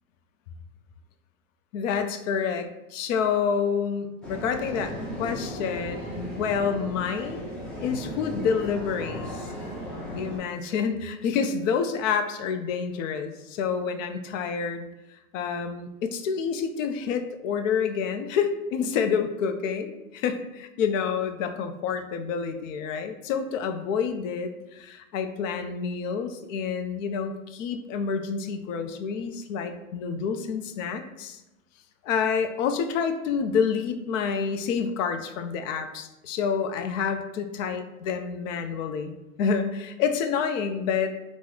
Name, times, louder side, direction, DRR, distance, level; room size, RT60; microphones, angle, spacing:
voice 1, 1.7-9.3 10.1-14.9 15.3-31.4 32.0-39.1 39.4-41.2, left 6 dB, 65° left, 8 dB, 0.5 m, -28 dB
sound 1, 4.2-10.4, equal, 5° left, 0.3 m, -36 dB
2.9 x 2.0 x 3.7 m, 0.95 s
hypercardioid pair, 110°, 42 cm